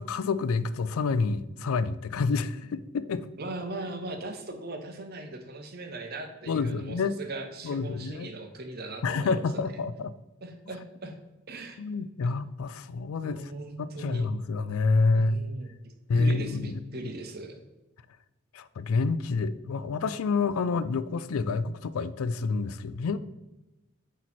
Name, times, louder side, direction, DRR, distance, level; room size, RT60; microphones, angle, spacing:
voice 1, 0.0-3.3 6.5-7.1 7.6-8.3 9.0-10.1 11.8-13.4 13.8-15.4 16.1-16.8 18.5-23.2, left 4 dB, 85° left, 15 dB, 0.4 m, -28 dB
voice 2, 3.4-9.8 10.4-11.2 11.5-11.8 13.2-14.3 15.1-17.6, right 2 dB, 45° right, 6 dB, 0.8 m, -39 dB
8.4 x 3.1 x 4.1 m, 1.0 s
head